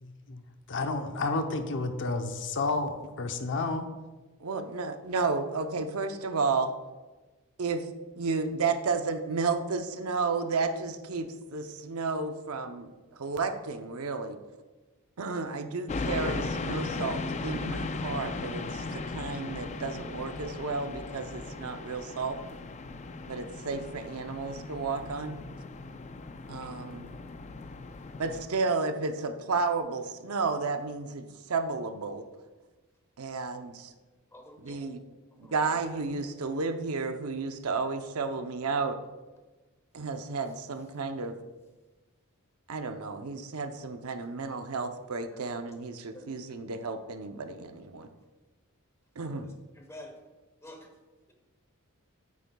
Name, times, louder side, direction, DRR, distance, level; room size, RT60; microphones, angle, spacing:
voice 1, 0.0-3.9, left 3 dB, 60° left, 7 dB, 0.7 m, -31 dB
voice 2, 4.4-6.7 7.6-7.8 8.2-14.4 15.2-22.4 23.3-25.4 26.5-27.1 28.2-32.2 33.2-33.9 34.6-35.0 35.4-39.0 39.9-41.3 42.7-48.1 49.2-49.5, right 4 dB, 75° right, 7 dB, 0.7 m, -32 dB
sound 1, 15.9-28.5, left 3 dB, 35° left, 0.4 m, -37 dB
voice 3, 34.3-35.0 35.4-35.6 45.3-45.4 46.1-46.3 49.7-50.1 50.6-50.9, left 1 dB, 15° left, 3 dB, 1.0 m, -48 dB
9.2 x 8.4 x 2.3 m, 1.2 s
head